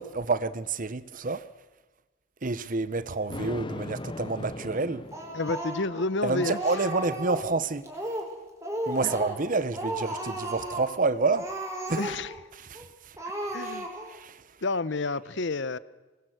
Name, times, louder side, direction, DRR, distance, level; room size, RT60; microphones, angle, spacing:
voice 1, 0.0-1.4 2.4-5.1 6.2-7.9 8.9-11.5 11.9-12.1 12.5-13.2 13.6-14.4, right 3 dB, 40° right, 0.8 m, -29 dB
Thunder, 3.3-5.8, left 2 dB, 25° left, 0.8 m, -39 dB
Speech, 5.1-6.0 6.4-7.5 7.8-8.3 8.6-9.5 9.7-10.9 11.3-12.4 12.7-12.9 13.2-14.2, right 1 dB, 15° right, 4.2 m, -34 dB
voice 2, 5.3-6.6 9.0-9.1 12.0-12.3 13.5-13.9 14.6-15.8, left 3 dB, 60° left, 0.9 m, -29 dB
25.0 x 20.0 x 8.0 m
head